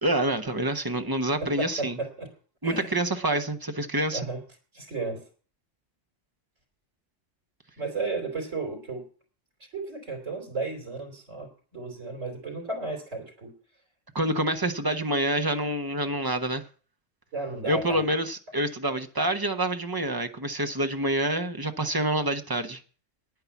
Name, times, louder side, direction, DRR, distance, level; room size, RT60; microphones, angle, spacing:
voice 1, 0.0-2.0 2.6-4.3 14.1-16.6 17.6-22.8, right 1 dB, 20° right, 0.9 m, -27 dB
voice 2, 1.6-2.3 2.6-2.9 4.1-4.4 4.7-5.2 7.8-9.0 9.7-13.5 17.3-18.0, right 3 dB, 90° right, 3.7 m, -33 dB
9.8 x 9.5 x 7.1 m
omnidirectional pair, 1.3 m